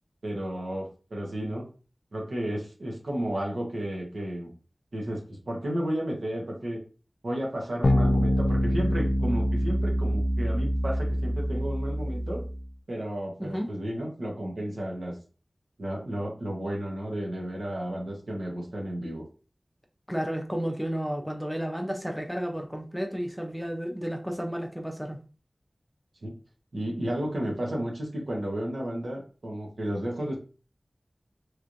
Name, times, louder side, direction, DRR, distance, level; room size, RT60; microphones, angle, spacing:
voice 1, 0.2-1.6 2.1-4.5 4.9-6.8 7.2-12.4 12.9-15.1 15.8-19.2 26.2-26.3 26.7-30.4, right 1 dB, 85° right, -1 dB, 1.1 m, -32 dB
sound 1, 7.8-12.6, equal, 75° left, 0.4 m, -25 dB
voice 2, 20.1-25.2, equal, ahead, 3 dB, 0.6 m, -32 dB
3.2 x 3.0 x 2.6 m, 0.36 s
wide cardioid pair, 65°, 0 cm